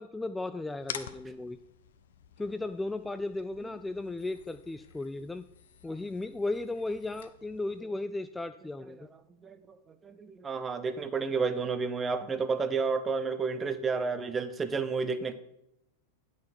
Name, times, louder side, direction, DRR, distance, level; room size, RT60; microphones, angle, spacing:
voice 1, 0.0-1.6 2.4-5.4 5.8-9.0, left 2 dB, 10° left, 11 dB, 0.3 m, -35 dB
sound 1, 0.8-7.8, left 9 dB, 60° left, 0.7 m, -48 dB
voice 2, 9.4-9.8 10.0-15.3, right 4 dB, 20° right, 11 dB, 0.8 m, -31 dB
10.5 x 6.1 x 4.4 m, 0.83 s
figure-of-eight pair, 90°, 0 cm